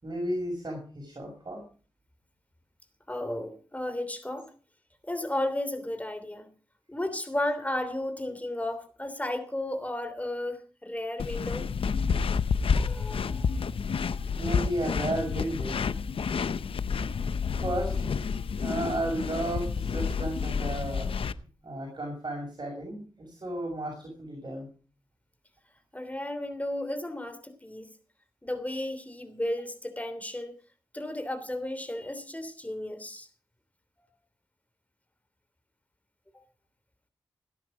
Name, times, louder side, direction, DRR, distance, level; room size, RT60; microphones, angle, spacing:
voice 1, 0.0-1.6 14.4-15.8 17.6-18.1 18.6-21.1 21.6-24.7, right 1 dB, 50° right, 0 dB, 6.3 m, -33 dB
voice 2, 3.1-4.5 5.0-6.5 6.9-11.7 12.7-13.5 25.9-27.9 28.4-30.5 30.9-33.3 36.3-36.4, left 1 dB, 15° left, 10 dB, 3.1 m, -34 dB
sound 1, 11.2-21.3, left 5 dB, 80° left, 0.7 m, -29 dB
17.5 x 10.5 x 5.0 m, 0.38 s
cardioid pair, 60°, 9 cm